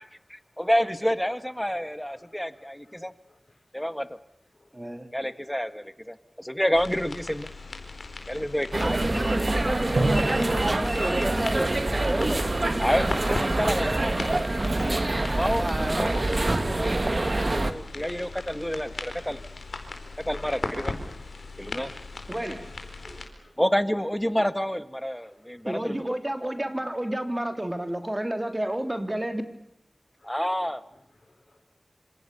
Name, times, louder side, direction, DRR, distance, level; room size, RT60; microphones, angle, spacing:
voice 1, 0.6-3.1 3.7-4.1 5.1-7.5 8.3-8.9 12.8-14.5 15.3-15.7 16.0-16.2 16.6-19.4 20.3-21.0 21.6-21.9 23.6-26.2 30.2-30.8, equal, 5° left, 12 dB, 1.7 m, -28 dB
voice 2, 4.7-5.1 8.8-11.7 12.0-12.5 15.6-16.1 22.3-22.7 23.0-23.2 25.6-29.4, right 1 dB, 20° right, 7 dB, 3.4 m, -30 dB
sound 1, 6.7-23.3, left 3 dB, 90° left, 4.4 m, -39 dB
sound 2, 8.7-17.7, right 2 dB, 45° right, 2.1 m, -26 dB
Drum, 10.0-12.9, right 2 dB, 80° right, 6.9 m, -32 dB
voice 3, 23.2-23.5 25.2-25.6 30.2-30.3 31.3-31.6, left 2 dB, 45° left, 1 dB, 4.5 m, -62 dB
27.0 x 27.0 x 7.0 m, 0.79 s
wide cardioid pair, 65°, 0 cm